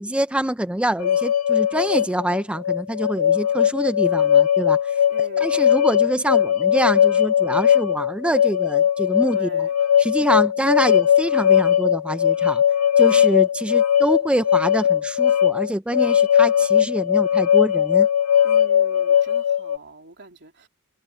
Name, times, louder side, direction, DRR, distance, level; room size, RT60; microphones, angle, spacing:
voice 1, 0.0-4.8 5.4-9.7 10.0-12.6 13.0-18.1, right 1 dB, 5° right, 0.5 m, -25 dB
sound 1, 1.0-19.8, left 9 dB, 80° left, 0.8 m, -19 dB
voice 2, 5.1-5.5 9.3-9.7 18.4-20.7, right 2 dB, 55° right, 3.5 m, -43 dB
head